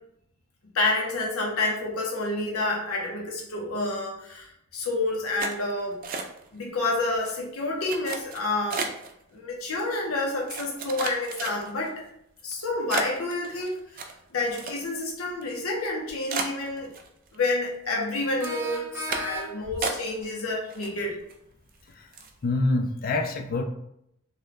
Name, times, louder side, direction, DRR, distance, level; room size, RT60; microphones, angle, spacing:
voice 1, 0.7-6.0 6.5-8.8 9.3-11.9 12.4-16.9 17.3-21.1, left 2 dB, 85° left, -1 dB, 0.7 m, -29 dB
sound 1, 5.4-6.6 6.9-7.3 7.8-9.1 9.8-9.9 10.5-11.9 12.4-12.5 12.9-15.1 15.4-15.5 15.9-16.0 16.3-17.4 17.7-18.1 18.4-18.6 19.1-19.4 19.8-20.4 20.7-21.3 21.7-21.8 22.1-22.4, right 4 dB, 40° right, 0.4 m, -33 dB
sound 2, 18.4-19.8, equal, 10° right, 0.9 m, -36 dB
voice 2, 22.4-23.6, left 2 dB, 40° left, 5 dB, 0.4 m, -26 dB
3.1 x 2.2 x 3.8 m, 0.76 s
head